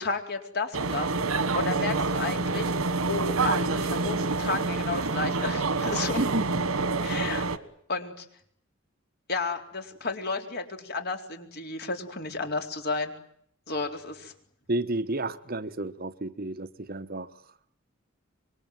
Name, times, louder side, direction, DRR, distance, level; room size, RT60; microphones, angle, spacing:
voice 1, 0.0-2.7 3.1-6.3 7.0-7.5 7.9-8.3 9.3-13.1 13.7-14.3, left 3 dB, 50° left, 4.1 m, -32 dB
sound 1, 0.7-7.6, right 3 dB, 80° right, 1.6 m, -27 dB
voice 2, 6.2-6.5 14.7-17.3, right 2 dB, 45° right, 1.1 m, -31 dB
26.0 x 23.0 x 9.3 m
head